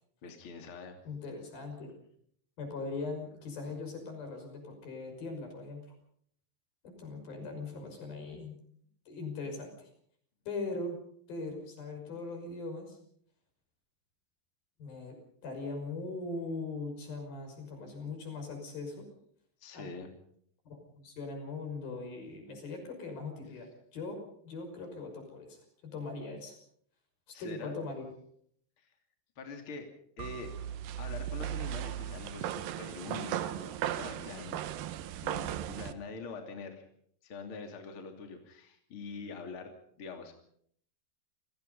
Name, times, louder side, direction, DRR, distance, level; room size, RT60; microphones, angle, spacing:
voice 1, 0.2-1.0 19.6-20.1 27.3-27.8 28.8-28.9 29.4-29.9 30.2-30.5 31.0-34.6 35.2-36.8 37.2-39.7 40.0-40.3, left 4 dB, 40° left, 4 dB, 3.4 m, -44 dB
voice 2, 1.1-1.9 2.6-6.0 6.8-8.5 9.1-9.9 10.5-11.0 11.3-13.0 14.8-15.2 15.4-19.1 19.7-19.9 20.7-26.6 27.3-28.1, left 3 dB, 85° left, 5 dB, 7.7 m, -40 dB
sound 1, 30.2-35.9, right 11 dB, 80° right, 2.8 m, -37 dB
29.0 x 18.5 x 5.5 m, 0.64 s
omnidirectional pair, 4.1 m